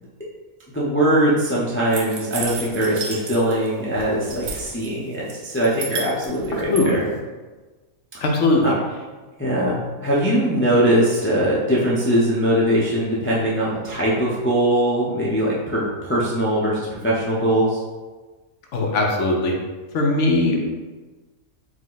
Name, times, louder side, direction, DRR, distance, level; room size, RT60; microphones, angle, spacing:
voice 1, 0.7-7.0 8.6-8.7 9.4-17.8, right 1 dB, 15° left, -6 dB, 0.4 m, -21 dB
sound 1, 1.9-3.7 3.9-4.9 5.3-6.8, right 4 dB, 85° right, 1.2 m, -32 dB
voice 2, 8.2-8.7 18.7-19.5 19.9-20.7, left 2 dB, 65° left, 1 dB, 0.9 m, -19 dB
4.8 x 2.1 x 3.9 m, 1.3 s
omnidirectional pair, 1.4 m